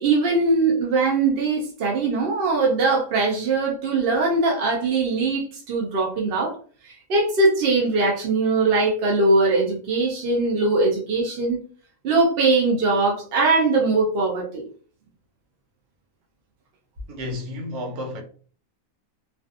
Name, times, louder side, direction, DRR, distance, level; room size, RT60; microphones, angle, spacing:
voice 1, 0.0-6.6 6.8-11.6 12.0-14.6, right 3 dB, 60° right, 0.6 m, -21 dB
voice 2, 17.1-18.2, left 1 dB, 85° right, 1.2 m, -31 dB
2.5 x 2.4 x 2.3 m
omnidirectional pair, 1.6 m